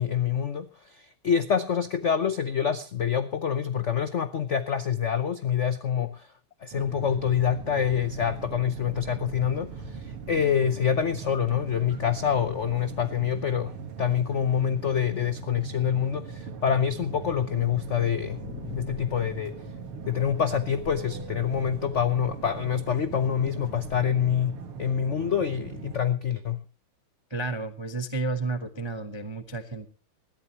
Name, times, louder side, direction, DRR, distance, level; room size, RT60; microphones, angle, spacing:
voice 1, 0.0-6.3 6.6-13.7 14.0-18.4 18.7-19.5 20.1-26.6, left 8 dB, 65° left, 12 dB, 0.7 m, -26 dB
sound 1, 6.7-26.0, right 5 dB, 85° right, 2.6 m, -40 dB
sound 2, 18.4-24.0, left 7 dB, 50° left, 1.7 m, -45 dB
voice 2, 27.3-29.9, right 3 dB, 30° right, 9 dB, 0.4 m, -31 dB
20.5 x 13.0 x 2.9 m, 0.34 s
omnidirectional pair, 2.3 m